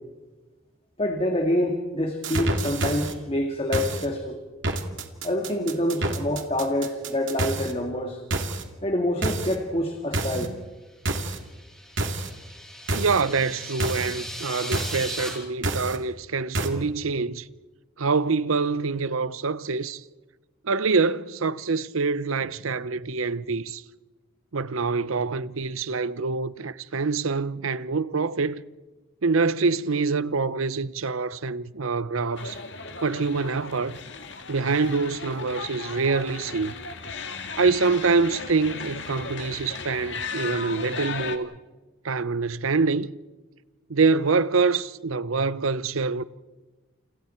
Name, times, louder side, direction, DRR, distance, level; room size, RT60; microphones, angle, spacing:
voice 1, 1.0-4.4 5.2-8.2 8.8-10.5, left 1 dB, 30° left, 2.0 m, -26 dB
sound 1, 2.2-3.1 3.7-4.1 4.6-7.7 8.3-8.6 9.2-9.6 10.1-10.5 11.1-11.4 12.0-12.3 12.9-13.2 13.8-14.1 14.7-15.0 15.6-16.0 16.6-16.7, right 2 dB, 65° right, 2.5 m, -28 dB
sound 2, 11.2-15.3, equal, 5° left, 7.3 m, -38 dB
voice 2, 12.9-17.5 18.0-20.0 20.6-23.8 24.5-28.6 29.2-32.6 33.0-34.0 34.5-36.7 37.6-41.6 42.0-43.1 43.9-46.2, right 4 dB, 80° right, 0.8 m, -25 dB
sound 3, 32.4-41.4, left 4 dB, 60° left, 1.9 m, -36 dB
29.5 x 29.0 x 4.5 m
head